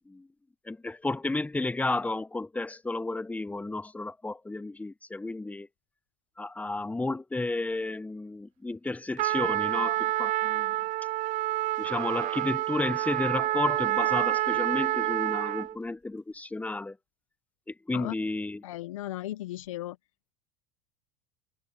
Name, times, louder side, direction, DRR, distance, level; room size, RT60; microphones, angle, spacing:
voice 1, 0.7-5.7 6.4-10.8 11.8-17.0 17.7-18.7, left 2 dB, 10° left, 0.9 m, -32 dB
Trumpet, 9.2-15.7, right 16 dB, 50° right, 0.5 m, -28 dB
voice 2, 18.6-20.0, left 14 dB, 85° left, 0.9 m, -36 dB
hypercardioid pair, 90°, 16 cm